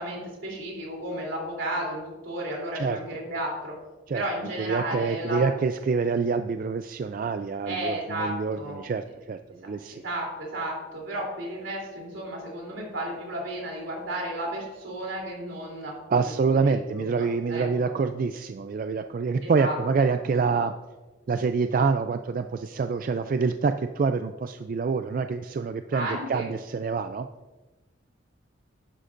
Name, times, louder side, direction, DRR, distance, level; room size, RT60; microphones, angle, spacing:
voice 1, 0.0-3.7 4.1-5.5 7.6-8.8 9.9-16.2 16.6-17.9 19.4-20.1 25.9-26.4, right 1 dB, 80° right, -1 dB, 3.2 m, -33 dB
voice 2, 4.6-10.0 16.1-20.7 21.3-27.3, right 4 dB, 45° right, 9 dB, 0.3 m, -26 dB
11.5 x 9.7 x 2.6 m, 1.2 s
head